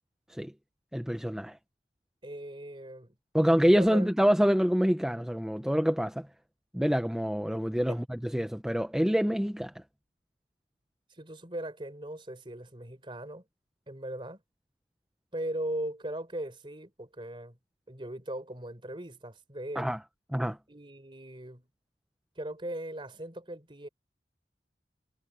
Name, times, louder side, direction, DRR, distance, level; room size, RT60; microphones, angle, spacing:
voice 1, 0.9-1.6 3.3-6.3 6.7-9.7 19.8-20.0 20.3-20.6, equal, 5° right, 0.5 m, -26 dB
voice 2, 2.2-3.2 3.7-4.1 7.9-8.0 11.1-13.4 13.9-14.4 15.3-17.6 17.9-20.0 20.7-21.7 22.4-23.9, right 1 dB, 25° right, 3.8 m, -39 dB
head